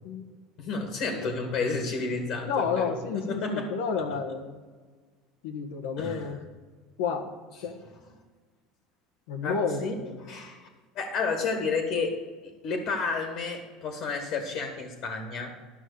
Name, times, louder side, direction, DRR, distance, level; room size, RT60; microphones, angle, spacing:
voice 1, 0.6-3.8 6.0-6.4 9.4-10.7 11.0-12.2 12.6-15.5, left 4 dB, 60° left, 4 dB, 1.9 m, -31 dB
voice 2, 2.4-4.6 5.4-6.4 7.0-7.3 7.6-7.8 9.3-10.2, left 5 dB, 75° left, 6 dB, 1.3 m, -30 dB
11.0 x 6.1 x 6.8 m, 1.4 s
hypercardioid pair, 85°, 0 cm